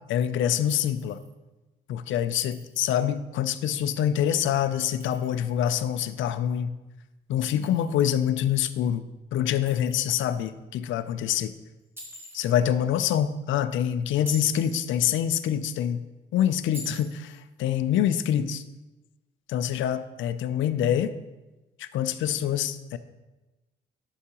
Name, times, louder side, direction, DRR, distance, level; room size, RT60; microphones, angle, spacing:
voice 1, 0.1-1.2 1.9-6.8 7.3-9.1 9.3-11.5 12.3-16.0 16.3-18.6 19.5-21.1 21.8-23.0, left 10 dB, 75° left, 13 dB, 0.4 m, -26 dB
Chink clink, 0.7-1.3 2.3-3.0 4.6-5.5 7.4-8.3 9.7-10.4 12.0-12.6 14.1-14.9 16.7-17.4, left 1 dB, 10° right, 1.8 m, -45 dB
11.5 x 4.8 x 2.9 m, 1.1 s
cardioid pair, 90°, 20 cm